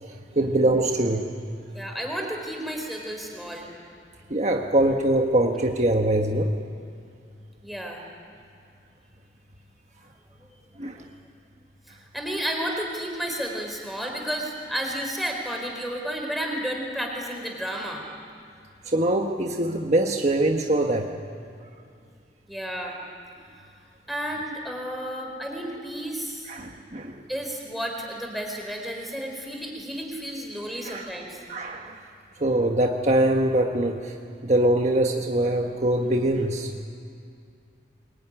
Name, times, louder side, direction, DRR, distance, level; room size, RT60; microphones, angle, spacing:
voice 1, 0.0-1.3 4.3-6.5 10.8-11.1 18.8-21.1 26.4-27.2 30.8-31.1 31.5-32.0 32.4-34.1 34.4-36.7, right 1 dB, 40° right, 2 dB, 1.4 m, -23 dB
voice 2, 1.7-3.7 7.6-8.0 11.9-18.1 22.5-23.0 24.1-26.5 27.3-31.4, equal, ahead, 1 dB, 4.1 m, -32 dB
24.0 x 22.0 x 9.9 m, 2.4 s
head